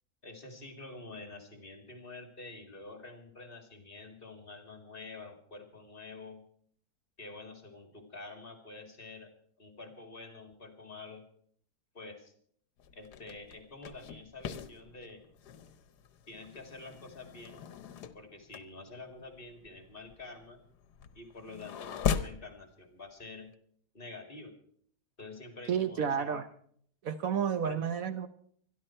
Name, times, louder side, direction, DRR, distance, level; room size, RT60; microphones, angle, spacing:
voice 1, 0.2-6.4 7.2-9.3 9.6-11.2 11.9-12.3 12.9-15.2 16.3-17.6 18.1-20.6 21.1-23.5 23.9-24.5 25.2-26.5 27.6-27.8, left 3 dB, 35° left, 6 dB, 2.4 m, -48 dB
sound 1, 12.8-22.5, left 7 dB, 80° left, 1.4 m, -39 dB
voice 2, 25.7-26.5 27.0-28.3, right 7 dB, 65° right, 10 dB, 1.2 m, -31 dB
24.5 x 11.0 x 4.4 m, 0.62 s
omnidirectional pair, 1.7 m